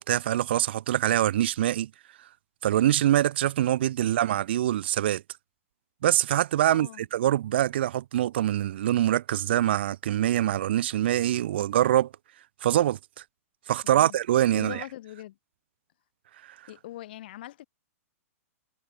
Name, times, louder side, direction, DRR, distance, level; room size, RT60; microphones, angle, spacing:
voice 1, 0.0-1.9 2.6-5.2 6.0-12.1 12.6-13.0 13.7-14.8, right 12 dB, 45° right, 0.4 m, -24 dB
voice 2, 6.7-7.1 13.8-14.2 14.5-15.4 16.7-17.7, left 14 dB, 40° left, 1.5 m, -42 dB
hypercardioid pair, 180°, 8 cm